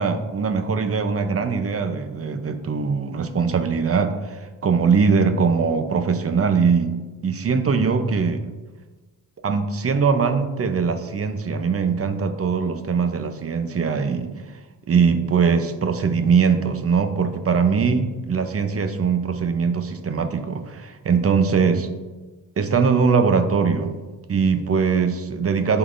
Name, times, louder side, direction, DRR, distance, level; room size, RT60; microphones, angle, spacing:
voice 1, 0.0-6.9 7.2-8.5 9.4-14.3 14.9-21.9 22.6-23.9 24.3-25.8, right 5 dB, 40° right, 7 dB, 0.7 m, -21 dB
11.5 x 3.9 x 2.6 m, 1.2 s
cardioid pair, 90°, 36 cm